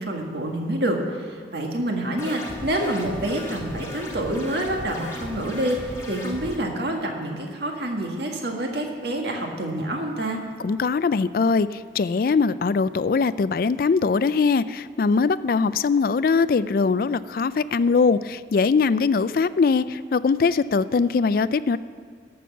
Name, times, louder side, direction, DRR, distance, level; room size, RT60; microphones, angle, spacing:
voice 1, 0.0-10.4, right 1 dB, 65° right, 1 dB, 1.7 m, -27 dB
sound 1, 2.2-6.6, left 1 dB, 15° left, 1.3 m, -36 dB
voice 2, 10.6-21.8, left 4 dB, 50° left, 16 dB, 0.3 m, -21 dB
13.0 x 6.2 x 7.0 m, 2.1 s
head